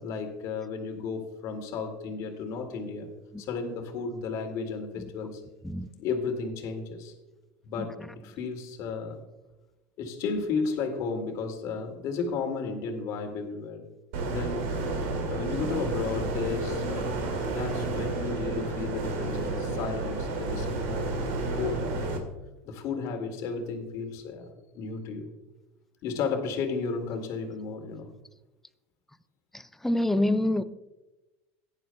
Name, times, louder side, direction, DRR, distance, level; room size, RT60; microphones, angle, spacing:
voice 1, 0.0-3.1 3.4-5.4 6.0-7.1 7.6-8.0 8.2-9.2 10.0-13.9 14.2-14.7 15.3-21.1 21.5-22.1 22.6-25.3 26.0-28.1, left 5 dB, 60° left, 4 dB, 2.2 m, -33 dB
sound 1, 14.1-22.2, right 2 dB, 85° right, 2.1 m, -31 dB
voice 2, 29.8-30.6, left 1 dB, 5° left, 12 dB, 0.5 m, -25 dB
16.0 x 10.5 x 2.2 m, 1.1 s
supercardioid pair, 110°, 7 cm